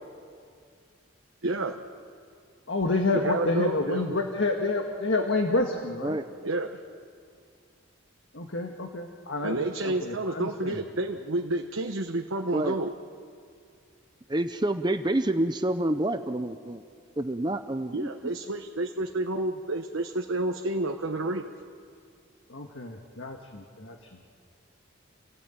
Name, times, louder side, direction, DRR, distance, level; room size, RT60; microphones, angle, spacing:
voice 1, 1.4-1.8 3.1-4.2 6.4-6.8 9.4-12.9 17.9-21.5, right 2 dB, 85° right, 3 dB, 1.2 m, -30 dB
voice 2, 2.7-6.2 8.3-10.8 22.5-24.1, left 2 dB, 70° left, 3 dB, 1.7 m, -29 dB
voice 3, 14.3-16.8 17.2-18.3, right 1 dB, 20° right, 9 dB, 0.7 m, -28 dB
29.5 x 17.0 x 9.1 m, 2.2 s
head